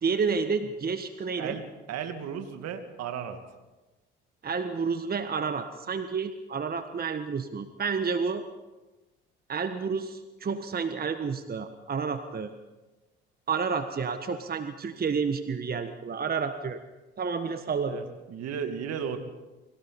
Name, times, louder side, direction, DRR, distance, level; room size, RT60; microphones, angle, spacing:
voice 1, 0.0-1.6 4.4-8.4 9.5-12.5 13.5-16.8 17.2-18.0, right 5 dB, 30° right, 9 dB, 1.4 m, -30 dB
voice 2, 1.4-3.4 17.9-19.2, right 7 dB, 60° right, 7 dB, 2.3 m, -35 dB
29.0 x 23.5 x 4.3 m, 1.1 s
hypercardioid pair, 50°, 29 cm